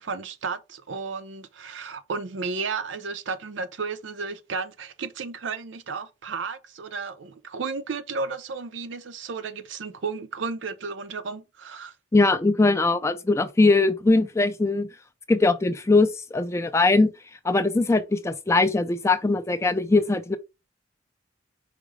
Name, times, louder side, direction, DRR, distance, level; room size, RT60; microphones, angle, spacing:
voice 1, 0.0-11.9, right 4 dB, 80° right, 0.6 m, -33 dB
voice 2, 12.1-14.9 15.3-17.1 17.4-20.4, left 3 dB, 15° left, 0.3 m, -21 dB
5.0 x 2.0 x 4.7 m
head